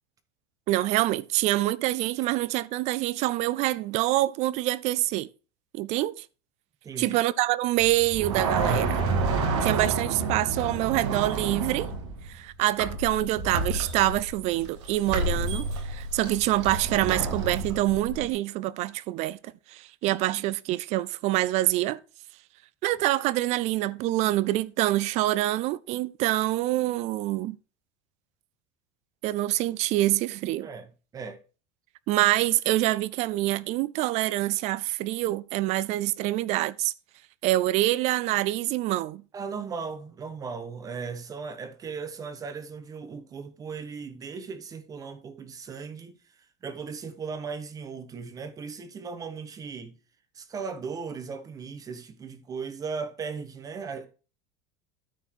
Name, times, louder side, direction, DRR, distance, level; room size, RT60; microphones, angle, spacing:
voice 1, 0.7-5.3 5.7-6.3 7.0-9.0 9.6-11.9 12.3-22.0 22.8-27.6 29.2-30.7 32.1-36.9 37.4-39.2, right 16 dB, 50° right, 0.5 m, -26 dB
voice 2, 6.8-7.2 30.6-30.9 31.1-31.4 39.3-46.2 46.6-50.0 50.3-54.1, right 5 dB, 25° right, 1.0 m, -37 dB
sound 1, 7.8-12.4 12.8-18.3, right 3 dB, 85° right, 2.0 m, -29 dB
13.0 x 4.4 x 4.5 m
supercardioid pair, 140°, 15 cm